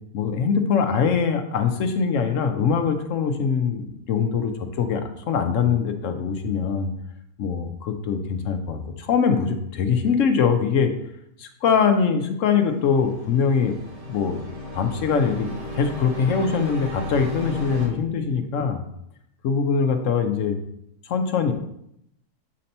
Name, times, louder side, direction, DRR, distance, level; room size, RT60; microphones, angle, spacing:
voice 1, 0.1-6.9 7.4-10.9 11.4-13.8 14.0-14.4 14.7-18.8 19.4-20.6 21.1-21.5, left 6 dB, 60° left, 6 dB, 0.9 m, -23 dB
sound 1, 12.8-17.9, left 2 dB, 40° right, 2.1 m, -34 dB
7.5 x 2.9 x 5.2 m, 0.76 s
omnidirectional pair, 1.6 m